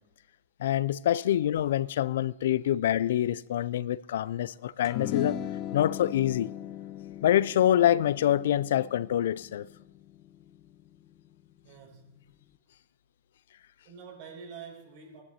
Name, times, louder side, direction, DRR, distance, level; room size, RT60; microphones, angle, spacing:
voice 1, 0.6-5.4 5.7-6.5 7.2-9.7, left 11 dB, 75° left, 0.3 m, -26 dB
sound 1, 4.8-11.4, left 10 dB, 35° left, 0.7 m, -38 dB
voice 2, 11.6-12.3 13.8-15.2, right 6 dB, 60° right, 5.9 m, -46 dB
22.5 x 11.5 x 2.9 m
supercardioid pair, 140°, 0 cm